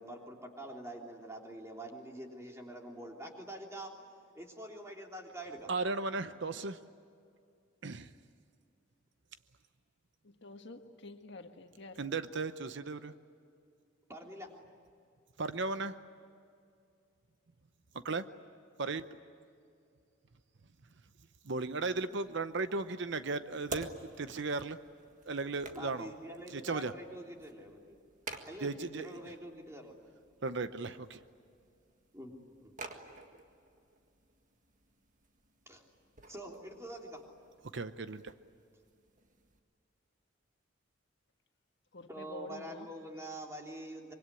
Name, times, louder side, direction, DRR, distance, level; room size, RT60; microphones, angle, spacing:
voice 1, 0.0-3.9 4.3-5.7 14.1-14.5 25.7-28.0 28.5-30.0 32.1-32.3 32.6-32.7 35.7-35.9 36.3-37.2 42.1-44.1, right 1 dB, 15° right, 1 dB, 3.3 m, -45 dB
voice 2, 5.7-6.8 7.8-8.1 12.0-13.1 15.4-15.9 18.0-18.2 18.8-19.0 21.5-23.9 24.2-24.8 25.3-26.1 26.5-26.9 28.6-29.1 30.4-31.2 37.7-38.3, right 3 dB, 60° right, 11 dB, 0.8 m, -35 dB
voice 3, 10.2-12.0 41.9-42.9 43.2-43.3, left 2 dB, 60° left, 5 dB, 1.6 m, -49 dB
sound 1, 22.0-39.6, right 3 dB, 40° right, 1.8 m, -52 dB
25.0 x 23.5 x 9.8 m, 2.4 s
head